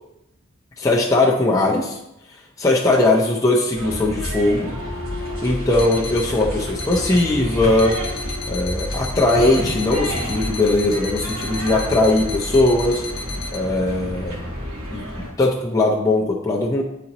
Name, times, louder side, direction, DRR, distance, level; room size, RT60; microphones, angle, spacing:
voice 1, 0.8-2.0 2.6-4.7 5.4-8.0 8.5-13.0 13.5-14.4 14.9-16.8, left 2 dB, 15° left, -2 dB, 0.6 m, -19 dB
sound 1, 3.7-15.3, equal, 75° right, 1.9 m, -30 dB
Wind instrument woodwind instrument, 4.8-8.9, left 4 dB, 40° left, 1.0 m, -36 dB
sound 2, 5.3-5.4 5.8-6.3 6.8-7.3 7.8-13.6, left 3 dB, 55° left, 0.7 m, -34 dB
9.7 x 4.1 x 2.9 m, 0.85 s
head